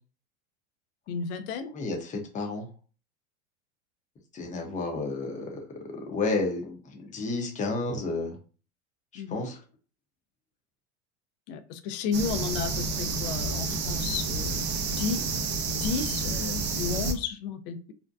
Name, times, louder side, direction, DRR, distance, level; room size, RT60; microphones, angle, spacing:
voice 1, 1.1-1.7 9.2-9.4 11.5-15.4 15.7-17.9, left 6 dB, 60° left, 10 dB, 0.5 m, -33 dB
voice 2, 1.7-2.7 4.3-8.4 9.1-9.6, left 3 dB, 20° left, 2 dB, 0.6 m, -31 dB
sound 1, 12.1-17.1, right 3 dB, 30° right, 0.4 m, -30 dB
2.6 x 2.1 x 2.3 m, 0.36 s
supercardioid pair, 115°, 37 cm